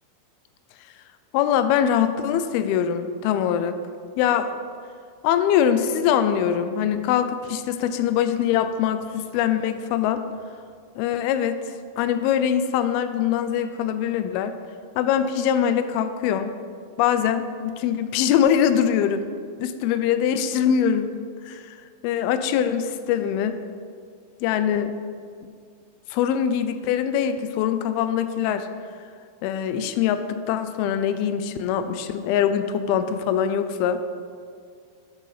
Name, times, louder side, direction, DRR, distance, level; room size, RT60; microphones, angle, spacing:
voice 1, 1.3-3.8 4.2-4.5 5.2-10.2 11.0-11.6 12.0-14.6 15.0-16.6 17.0-19.3 19.6-21.1 21.4-21.8 22.0-23.6 24.4-24.9 26.1-28.7 29.4-34.0, left 9 dB, 90° left, 10 dB, 2.5 m, -23 dB
11.0 x 6.3 x 4.9 m, 2.2 s
omnidirectional pair, 4.3 m